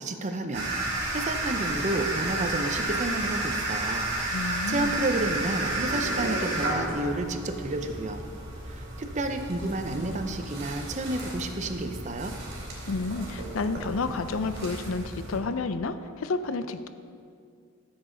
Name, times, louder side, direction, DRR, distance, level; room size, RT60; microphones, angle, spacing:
voice 1, 0.0-4.0 4.3-8.2 8.7-12.3, right 2 dB, 35° right, 6 dB, 0.6 m, -31 dB
sound 1, 0.5-15.4, right 2 dB, 55° right, 2.5 m, -32 dB
voice 2, 4.3-5.0 12.9-16.9, left 3 dB, 75° left, 11 dB, 0.5 m, -30 dB
14.0 x 7.1 x 3.9 m, 2.3 s
head